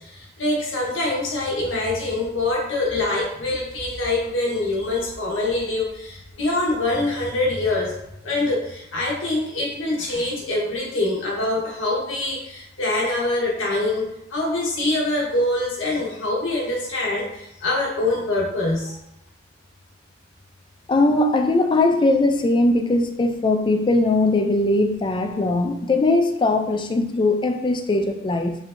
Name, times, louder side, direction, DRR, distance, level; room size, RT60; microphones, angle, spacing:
voice 1, 0.1-7.9 8.2-18.9, left 2 dB, 85° left, -3 dB, 1.1 m, -24 dB
voice 2, 20.9-28.6, left 2 dB, 25° left, 5 dB, 0.4 m, -20 dB
4.4 x 3.2 x 2.5 m, 0.83 s
head